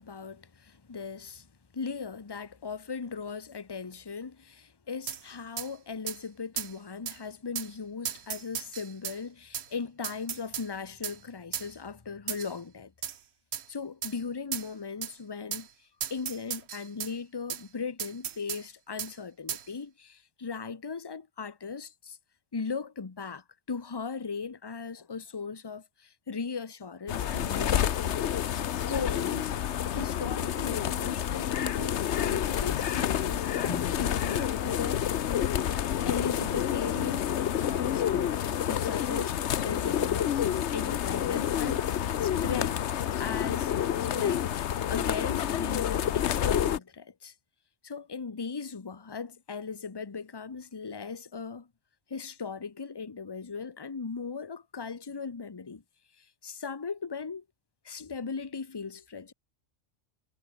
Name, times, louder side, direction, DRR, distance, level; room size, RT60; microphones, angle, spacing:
voice 1, 0.0-1.5 1.7-12.9 13.7-22.2 22.5-28.1 28.9-29.6 29.9-35.2 36.0-37.3 37.6-38.4 38.7-42.8 43.2-43.7 44.1-44.5 44.9-47.3 47.8-51.7 52.1-55.8 56.2-57.4 57.8-59.3, left 5 dB, 25° left, 0.9 m, -38 dB
sound 1, 5.1-5.2 5.6-5.7 6.1-6.2 6.6-6.7 7.1-7.2 7.6-7.7 8.1-9.2 9.5-9.7 10.0-10.7 11.0-11.2 11.5-11.7 12.3-12.6 13.0-13.2 13.5-13.7 14.0-14.2 14.5-14.7 15.0-15.1 15.5-15.7 16.0-17.1 17.5-17.6 18.0-18.6 19.0-19.1 19.5-19.7, right 9 dB, 65° right, 1.1 m, -35 dB
sound 2, 27.1-46.8, left 10 dB, 70° left, 1.1 m, -29 dB
omnidirectional pair, 1.2 m